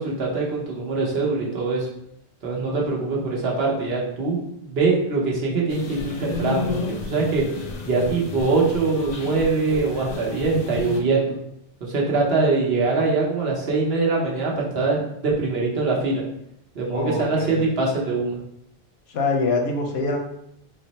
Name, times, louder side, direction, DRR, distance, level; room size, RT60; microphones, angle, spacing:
voice 1, 0.0-1.9 2.4-7.4 7.8-11.3 11.8-16.2 16.7-18.4, right 3 dB, 80° right, -3 dB, 1.1 m, -23 dB
sound 1, 5.7-11.0, left 4 dB, 50° left, 0.6 m, -32 dB
voice 2, 16.9-17.6 19.1-20.2, left 3 dB, 85° left, 2 dB, 0.9 m, -25 dB
3.7 x 2.0 x 4.1 m, 0.76 s
omnidirectional pair, 1.0 m